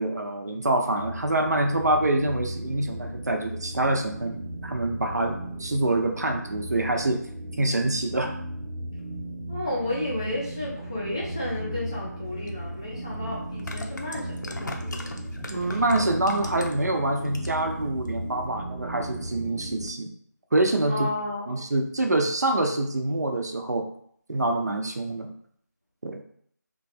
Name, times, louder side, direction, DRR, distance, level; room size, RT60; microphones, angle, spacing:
voice 1, 0.0-7.2 7.6-8.3 15.5-20.1 20.5-21.1 21.5-23.9 24.3-25.3 26.0-26.2, right 2 dB, 60° right, 4 dB, 0.6 m, -26 dB
sound 1, 1.0-19.9, right 1 dB, 90° right, 1.2 m, -36 dB
voice 2, 9.5-15.1 15.7-15.8 20.9-21.5, left 1 dB, 15° left, -6 dB, 0.5 m, -32 dB
sound 2, 12.5-12.6 13.5-16.9 17.2-17.7 18.1-18.2, left 2 dB, 75° left, 0.6 m, -38 dB
3.1 x 2.3 x 4.1 m, 0.64 s
figure-of-eight pair, 170°, 10 cm